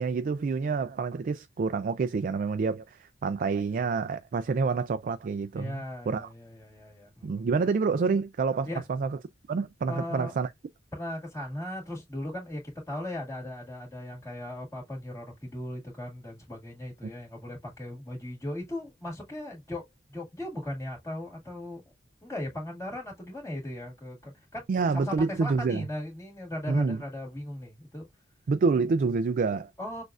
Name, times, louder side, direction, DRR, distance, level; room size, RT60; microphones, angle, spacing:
voice 1, 0.0-6.3 7.2-9.2 9.5-10.5 17.0-17.1 24.7-25.8 26.7-27.0 28.5-29.7, right 4 dB, 45° right, 0.3 m, -28 dB
voice 2, 5.5-7.4 8.6-8.8 9.9-10.3 10.9-12.6 12.9-19.8 20.1-21.8 22.2-24.7 24.9-28.1 29.8-30.0, left 1 dB, 15° left, 1.9 m, -38 dB
6.2 x 2.5 x 2.4 m
head